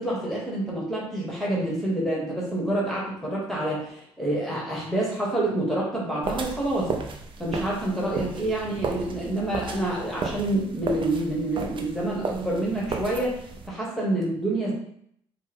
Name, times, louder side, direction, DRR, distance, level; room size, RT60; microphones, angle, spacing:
voice 1, 0.0-6.9 7.4-14.7, right 1 dB, ahead, -5 dB, 1.3 m, -27 dB
sound 1, 6.2-13.7, right 4 dB, 45° right, 0.6 m, -34 dB
4.3 x 2.1 x 3.5 m, 0.70 s
supercardioid pair, 65°, 12 cm